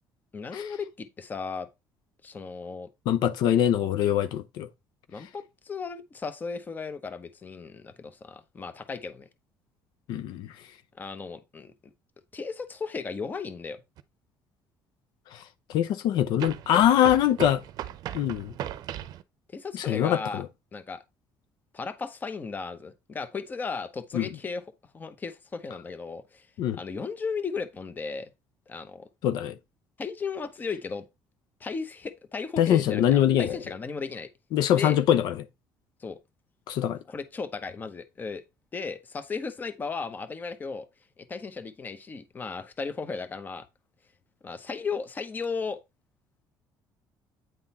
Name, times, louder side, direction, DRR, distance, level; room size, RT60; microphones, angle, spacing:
voice 1, 0.3-1.7 2.2-2.9 5.1-9.3 11.0-11.9 12.3-13.8 19.5-20.4 20.7-21.0 21.7-24.6 24.9-26.5 26.7-28.3 28.7-29.1 30.0-31.1 31.6-34.3 34.7-35.0 36.0-36.2 37.1-38.4 38.7-40.9 41.2-43.6 44.4-45.8, left 5 dB, 25° left, 0.9 m, -35 dB
voice 2, 3.1-4.7 10.1-10.5 15.3-15.4 15.7-17.6 18.1-18.5 19.7-20.5 24.1-24.3 26.6-26.8 29.2-29.5 32.6-33.6 34.5-35.3 36.7-37.0, left 10 dB, 75° left, 0.6 m, -23 dB
sound 1, 14.0-14.1 16.4-19.2, right 12 dB, 65° right, 0.6 m, -37 dB
9.1 x 3.8 x 4.2 m
cardioid pair, 140°, 7 cm